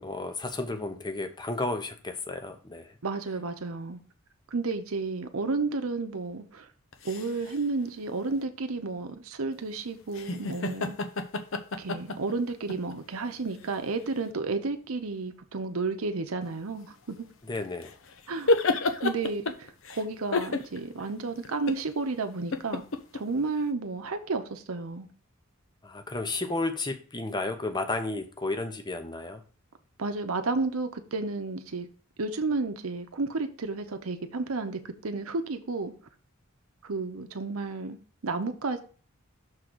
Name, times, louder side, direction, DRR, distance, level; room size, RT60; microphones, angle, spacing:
voice 1, 0.0-2.9 17.5-17.9 25.8-29.4, left 2 dB, 20° left, 0.7 m, -32 dB
voice 2, 3.0-4.0 4.5-6.7 7.0-11.0 11.8-17.3 18.3-18.5 19.0-22.8 23.1-25.1 30.0-31.9 32.2-35.9 36.8-38.0 38.2-38.8, right 3 dB, 80° right, 0.8 m, -32 dB
sound 1, 6.9-7.6 10.1-12.9 13.6-13.7 17.5-20.0 20.3-21.0 21.4-21.9 22.5-23.2, left 3 dB, 65° left, 0.7 m, -29 dB
6.4 x 3.8 x 6.0 m
head